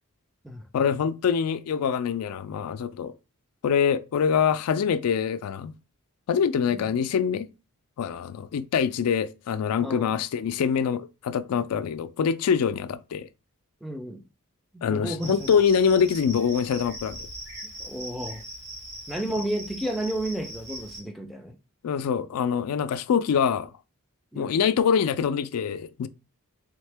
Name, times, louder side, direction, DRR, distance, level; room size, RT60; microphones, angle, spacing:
voice 1, 0.7-3.2 3.6-5.7 6.3-7.5 8.0-13.3 14.8-17.3 21.8-23.7 24.4-26.1, left 7 dB, 80° left, 0.3 m, -24 dB
voice 2, 9.8-10.1 11.5-11.6 13.8-14.2 14.7-15.5 17.8-18.4 19.1-21.5 24.3-24.6, right 1 dB, ahead, 0.4 m, -32 dB
Cricket, 15.2-21.0, right 1 dB, 50° right, 2.4 m, -40 dB
3.6 x 3.5 x 3.3 m
head